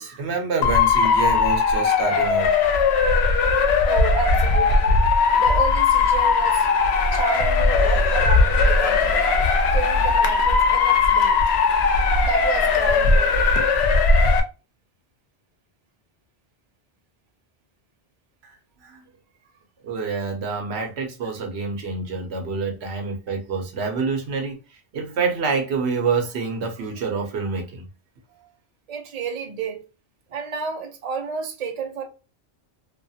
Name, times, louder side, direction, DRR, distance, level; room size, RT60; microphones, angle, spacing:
voice 1, 0.0-2.5 18.4-18.6 18.8-19.0 19.8-27.8, right 4 dB, 80° right, 0.9 m, -27 dB
Motor vehicle (road) / Siren, 0.6-14.4, left 4 dB, 80° left, 0.8 m, -18 dB
voice 2, 3.8-5.0 5.3-6.7 7.1-9.3 9.7-11.4 12.2-13.5 22.8-22.9 28.9-29.8 30.3-32.0, right 6 dB, 45° right, 0.6 m, -31 dB
2.4 x 2.3 x 2.6 m
omnidirectional pair, 1.1 m